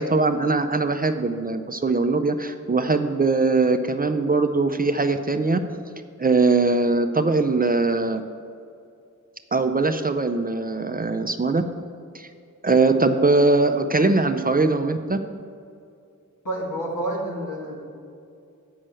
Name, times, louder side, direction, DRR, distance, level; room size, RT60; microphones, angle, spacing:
voice 1, 0.0-5.6 6.2-8.2 9.5-11.6 12.1-12.3 12.6-15.2, right 3 dB, 30° right, 7 dB, 0.5 m, -21 dB
voice 2, 16.4-17.8, right 1 dB, 80° left, -3 dB, 2.3 m, -29 dB
7.5 x 5.5 x 7.6 m, 2.4 s
wide cardioid pair, 90°, 32 cm